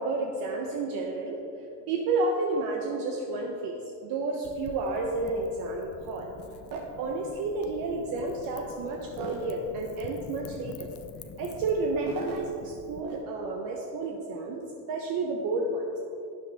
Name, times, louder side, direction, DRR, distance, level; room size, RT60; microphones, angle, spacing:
voice 1, 0.0-1.4 1.9-6.3 6.7-10.9 11.4-14.6 14.9-16.0, right 3 dB, 55° right, 1 dB, 1.0 m, -31 dB
Wind / Fire, 4.4-13.0, left 7 dB, 35° left, 0.6 m, -46 dB
12.0 x 9.8 x 3.5 m, 2.7 s
cardioid pair, 160°, 40 cm